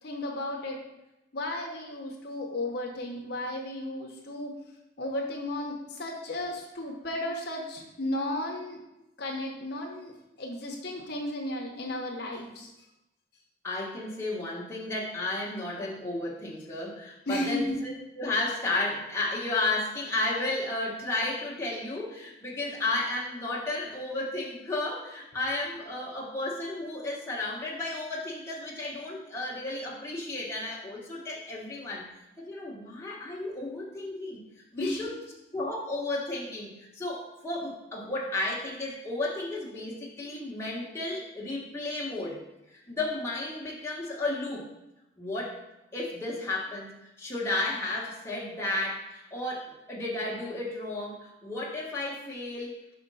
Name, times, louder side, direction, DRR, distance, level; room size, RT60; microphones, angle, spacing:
voice 1, 0.0-0.8 1.3-4.5 5.0-8.8 9.2-12.7 17.3-17.8 34.8-35.0, left 1 dB, 55° left, 0 dB, 0.8 m, -34 dB
voice 2, 13.6-32.0 32.4-34.4 34.7-35.1 35.5-42.4 42.7-44.7 45.2-45.6 45.9-52.7, left 2 dB, 15° left, -5 dB, 1.1 m, -33 dB
5.0 x 4.3 x 5.4 m, 0.93 s
head